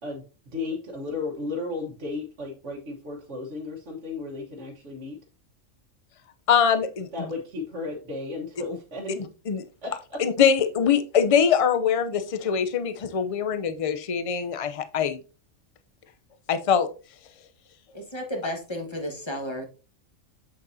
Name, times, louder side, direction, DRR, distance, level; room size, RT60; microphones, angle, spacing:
voice 1, 0.0-5.2 7.1-9.2 9.8-10.2, left 3 dB, 60° right, -2 dB, 1.6 m, -34 dB
voice 2, 6.5-7.3 9.5-9.6 10.2-15.2 16.5-16.9, left 7 dB, 40° left, 10 dB, 0.5 m, -23 dB
voice 3, 17.9-19.6, equal, 20° left, 2 dB, 1.4 m, -32 dB
8.1 x 6.7 x 2.7 m, 0.34 s
omnidirectional pair, 1.4 m